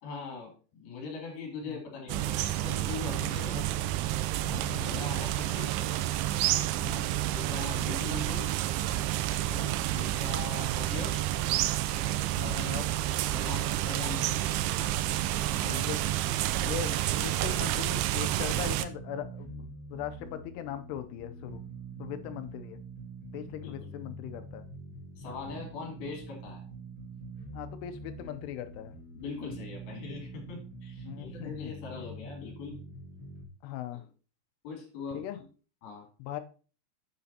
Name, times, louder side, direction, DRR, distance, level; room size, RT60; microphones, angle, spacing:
voice 1, 0.0-3.5 4.8-5.7 7.3-8.5 9.9-11.3 12.4-12.6 13.3-14.5 23.6-23.9 25.2-26.7 29.2-32.8 33.9-34.0 34.6-35.2 35.8-36.1, left 4 dB, 65° left, 1 dB, 4.3 m, -41 dB
sound 1, 2.1-18.9, right 14 dB, 80° right, 2.4 m, -29 dB
voice 2, 3.3-3.6 4.4-5.1 6.8-7.1 9.5-9.8 12.4-12.9 15.6-16.1 16.6-21.6 22.0-22.8 23.3-24.7 25.3-25.4 27.5-29.0 31.0-31.7 33.6-34.0 35.1-35.4 36.2-36.4, left 11 dB, 85° left, 9 dB, 2.8 m, -40 dB
sound 2, 17.4-33.4, right 3 dB, 30° left, 1.6 m, -45 dB
9.2 x 8.6 x 2.8 m, 0.38 s
omnidirectional pair, 4.7 m